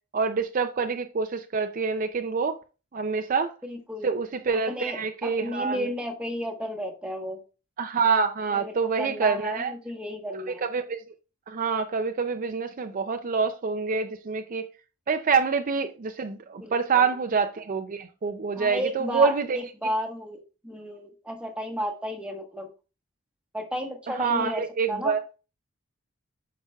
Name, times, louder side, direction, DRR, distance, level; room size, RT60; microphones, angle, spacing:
voice 1, 0.1-2.6 2.9-3.5 4.0-5.9 7.8-9.7 10.5-11.0 11.5-14.7 15.1-19.6 24.1-25.2, right 5 dB, 40° right, 0.5 m, -26 dB
voice 2, 3.6-4.1 4.5-7.4 8.5-10.7 16.6-17.1 18.6-22.7 23.5-25.1, equal, 5° right, 1.2 m, -33 dB
8.8 x 5.9 x 2.3 m
head